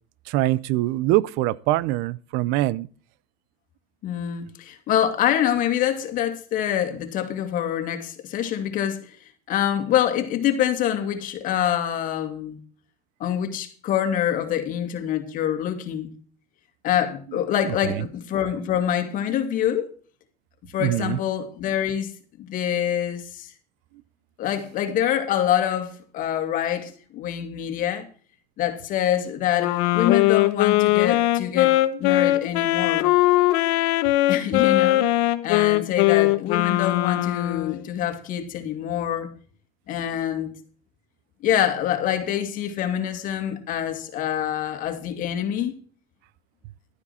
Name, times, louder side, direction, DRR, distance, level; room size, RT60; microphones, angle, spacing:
voice 1, 0.3-2.9 17.6-18.0 20.8-21.2, right 16 dB, 60° right, 0.6 m, -23 dB
voice 2, 4.0-9.2 9.5-12.6 13.2-16.1 16.8-19.9 20.7-22.1 22.4-23.5 24.4-28.1 28.6-33.1 34.3-35.1 35.4-39.3 39.9-40.5 41.4-45.8, left 10 dB, 45° left, 2.3 m, -25 dB
Wind instrument woodwind instrument, 29.6-37.8, left 17 dB, 70° left, 1.1 m, -20 dB
12.5 x 9.7 x 4.3 m
supercardioid pair, 135°, 19 cm